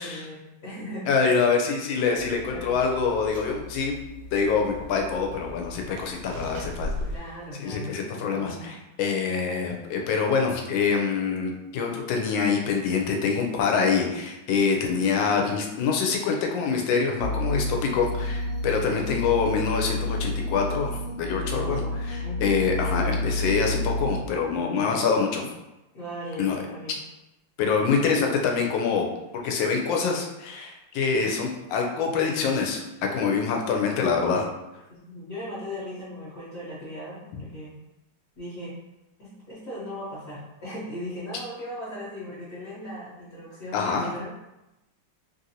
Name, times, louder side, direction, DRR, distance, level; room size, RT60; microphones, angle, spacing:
voice 1, 0.0-1.1 2.5-2.7 7.1-8.7 21.3-22.0 22.2-22.6 24.5-25.0 25.9-27.0 34.9-37.7 38.4-38.7 39.2-44.3, equal, 55° left, -10 dB, 1.2 m, -38 dB
voice 2, 1.1-3.9 4.3-6.9 7.6-21.8 22.1-25.5 26.4-26.5 27.6-29.1 29.3-32.8 33.1-34.5 43.7-44.1, left 5 dB, 90° left, 2 dB, 1.3 m, -25 dB
sound 1, 2.2-7.2, left 1 dB, 85° right, 1.3 m, -38 dB
sound 2, 17.2-24.2, left 2 dB, 65° right, 1.1 m, -29 dB
3.3 x 2.6 x 2.7 m, 0.96 s
omnidirectional pair, 2.0 m